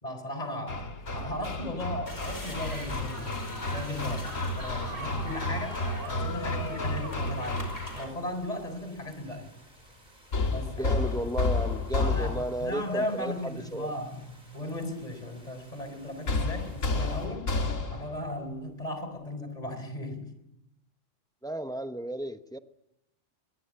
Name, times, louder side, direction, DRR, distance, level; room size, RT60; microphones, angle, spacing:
voice 1, 0.0-5.8 6.0-7.7 8.0-9.5 10.5-10.9 11.9-17.5 17.9-20.3, left 1 dB, 30° left, 9 dB, 4.0 m, -36 dB
Hammer, 0.7-8.1 10.3-12.7 16.3-18.2, left 3 dB, 75° left, 2.3 m, -31 dB
sound 1, 2.1-8.0, equal, 50° left, 5.5 m, -40 dB
sound 2, 2.8-17.3, right 1 dB, 35° right, 5.4 m, -56 dB
voice 2, 10.8-13.9 21.4-22.6, right 1 dB, 5° left, 9 dB, 0.9 m, -34 dB
23.5 x 21.5 x 8.5 m, 0.89 s
omnidirectional pair, 1.3 m